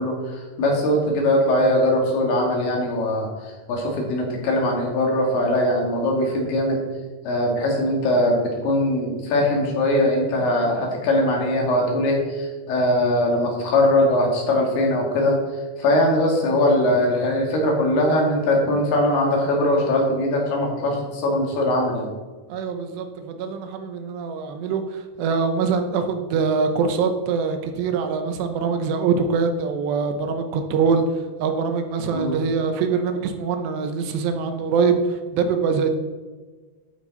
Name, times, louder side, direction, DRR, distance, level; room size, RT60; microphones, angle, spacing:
voice 1, 0.0-6.8 7.2-15.4 15.8-22.1 32.1-32.3, left 1 dB, 65° left, 0 dB, 4.0 m, -21 dB
voice 2, 22.5-36.0, right 5 dB, 75° right, 7 dB, 2.9 m, -23 dB
11.5 x 9.0 x 4.1 m, 1.3 s
omnidirectional pair, 5.3 m